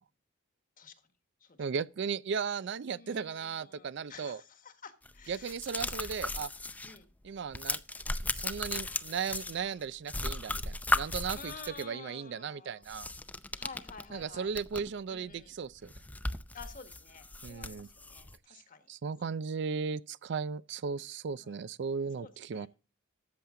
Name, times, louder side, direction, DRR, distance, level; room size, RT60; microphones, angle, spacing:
voice 1, 1.6-4.4 5.3-6.5 7.2-7.8 8.2-13.1 14.1-15.9 17.4-17.9 18.9-22.7, right 6 dB, 65° right, 0.4 m, -36 dB
voice 2, 2.8-5.5 6.8-7.1 9.6-9.8 11.3-12.9 13.5-14.5 15.1-15.5 16.5-18.9 19.3-19.4 21.4-21.7 22.2-22.7, left 5 dB, 45° left, 1.4 m, -51 dB
sound 1, 5.1-7.0 7.3-9.8 10.1-11.8 12.8-15.0 15.3-15.4 15.8-18.4, left 2 dB, 10° left, 0.5 m, -36 dB
13.5 x 7.2 x 3.7 m
head